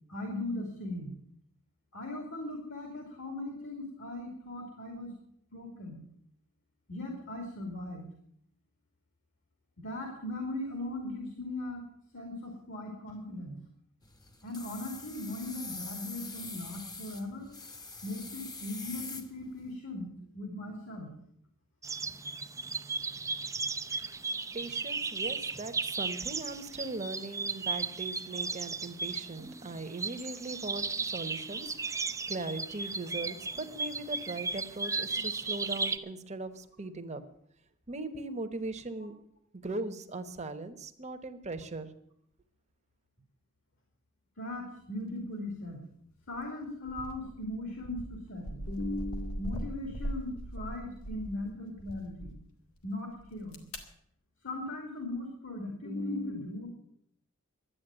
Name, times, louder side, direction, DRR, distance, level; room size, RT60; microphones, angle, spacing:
voice 1, 0.1-1.1 1.9-5.1 5.5-6.0 6.9-8.0 9.8-11.8 12.1-13.6 14.4-17.5 18.0-20.1 20.3-21.1 28.3-28.4 33.1-33.2 44.4-45.8 46.3-52.3 52.8-53.6 54.4-56.7, left 1 dB, 65° left, 2 dB, 2.8 m, -38 dB
sound 1, 14.0-19.7, left 3 dB, 20° left, 1.1 m, -44 dB
sound 2, 21.8-36.0, right 4 dB, 15° right, 0.6 m, -35 dB
voice 2, 24.5-37.2 37.9-39.1 39.6-41.9, right 2 dB, 35° right, 8 dB, 1.1 m, -39 dB
sound 3, 46.3-46.5 46.9-51.4 51.8-52.3 53.2-53.8, equal, 80° left, 2.1 m, -40 dB
12.0 x 8.7 x 8.9 m, 0.69 s
head